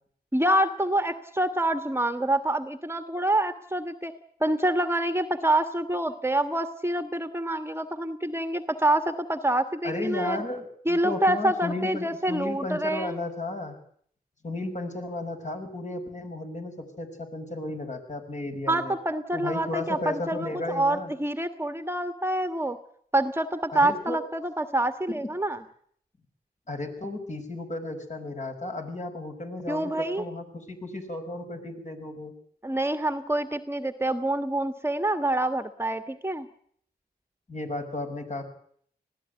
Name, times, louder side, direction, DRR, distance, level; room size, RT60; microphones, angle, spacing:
voice 1, 0.3-4.1 4.4-10.4 10.8-13.2 18.7-22.8 23.1-25.6 29.7-30.2 32.6-36.5, right 1 dB, 15° right, 9 dB, 1.5 m, -26 dB
voice 2, 9.8-13.8 14.4-19.0 19.3-21.1 23.7-24.2 25.1-25.3 26.7-32.3 37.5-38.4, left 2 dB, 45° left, 5 dB, 5.7 m, -34 dB
20.0 x 15.5 x 9.2 m, 0.62 s
cardioid pair, 50°, 18 cm